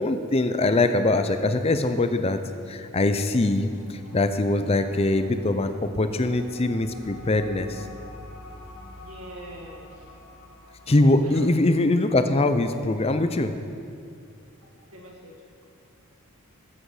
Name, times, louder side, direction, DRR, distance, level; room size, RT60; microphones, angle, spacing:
voice 1, 0.0-2.4 2.7-7.9 10.9-13.5, left 2 dB, 25° left, 9 dB, 0.5 m, -22 dB
sound 1, 2.9-11.2, left 1 dB, 70° left, 1.4 m, -46 dB
voice 2, 9.0-10.0 11.2-11.4 14.9-15.3, right 1 dB, 80° right, 0 dB, 1.9 m, -42 dB
14.0 x 7.7 x 5.0 m, 2.4 s
head